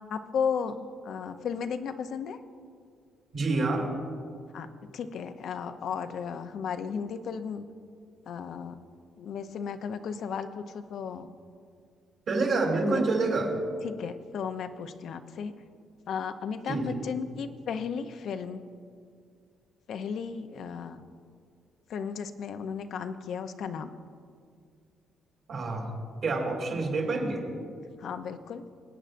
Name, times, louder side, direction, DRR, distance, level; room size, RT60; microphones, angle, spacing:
voice 1, 0.1-2.4 4.5-7.7 8.3-8.8 9.2-11.3 12.9-13.0 13.8-15.5 16.1-18.6 19.9-21.1 21.9-23.9 28.0-28.6, left 6 dB, 70° left, 9 dB, 0.5 m, -34 dB
voice 2, 3.3-3.9 12.3-13.5 16.7-16.9 25.5-25.9 26.2-27.4, right 3 dB, 60° right, 0 dB, 2.8 m, -27 dB
22.0 x 8.9 x 2.5 m, 2.2 s
cardioid pair, 90°, 0 cm